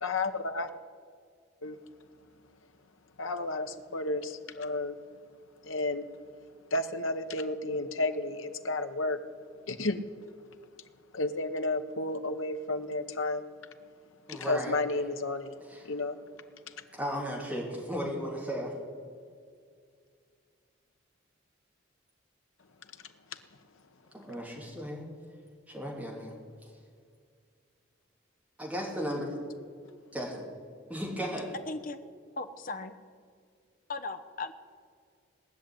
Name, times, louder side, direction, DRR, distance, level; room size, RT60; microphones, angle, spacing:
voice 1, 0.0-0.7 1.6-1.8 3.2-5.0 5.6-6.1 6.7-9.2 9.7-10.0 11.1-13.5 14.3-15.6 15.8-16.2, left 2 dB, 80° left, 8 dB, 1.0 m, -32 dB
voice 2, 14.3-14.8 15.7-15.9 16.9-18.7 24.1-25.0 25.7-26.3 26.6-26.7 28.6-29.3 30.1-30.5 30.9-31.5, equal, 5° right, -3 dB, 3.1 m, -35 dB
voice 3, 31.7-32.0 32.4-32.9 33.9-34.5, left 3 dB, 45° left, 9 dB, 0.8 m, -37 dB
19.0 x 6.5 x 10.0 m, 2.2 s
head